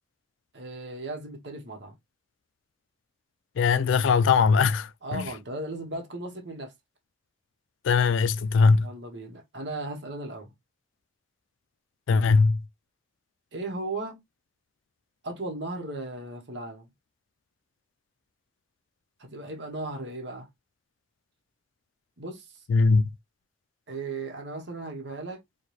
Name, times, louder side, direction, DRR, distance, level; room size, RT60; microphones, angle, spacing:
voice 1, 0.5-1.9 5.0-6.7 8.8-10.5 13.5-14.2 15.2-16.9 19.2-20.5 22.2-22.4 23.9-25.4, right 2 dB, 60° right, 1.0 m, -36 dB
voice 2, 3.6-5.3 7.8-8.9 12.1-12.6 22.7-23.1, left 4 dB, 75° left, 0.3 m, -21 dB
4.5 x 2.3 x 3.1 m
head